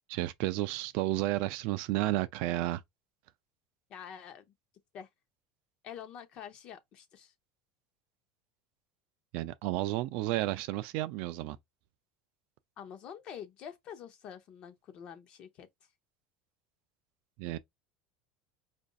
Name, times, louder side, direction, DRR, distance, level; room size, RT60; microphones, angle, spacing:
voice 1, 0.1-2.8 9.3-11.6 17.4-17.6, right 16 dB, 50° right, 0.3 m, -32 dB
voice 2, 3.9-4.4 4.9-5.1 5.8-7.3 12.8-15.7, left 8 dB, 35° left, 0.7 m, -46 dB
5.0 x 2.5 x 2.3 m
cardioid pair, 175°, 3 cm